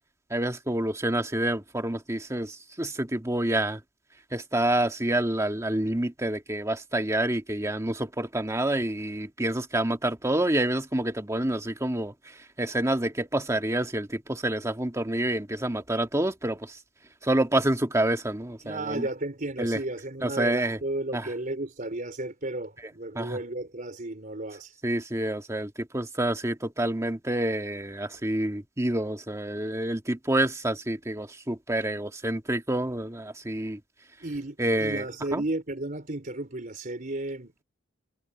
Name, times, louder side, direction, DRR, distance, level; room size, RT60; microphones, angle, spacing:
voice 1, 0.3-3.8 4.3-16.8 17.2-19.1 19.6-19.8 20.2-20.8 21.1-21.2 23.2-23.4 24.8-33.8 34.6-35.0 35.3-35.4, right 1 dB, 15° right, 1.9 m, -28 dB
voice 2, 18.6-24.8 31.8-31.9 34.2-37.6, right 2 dB, 45° right, 4.1 m, -33 dB
head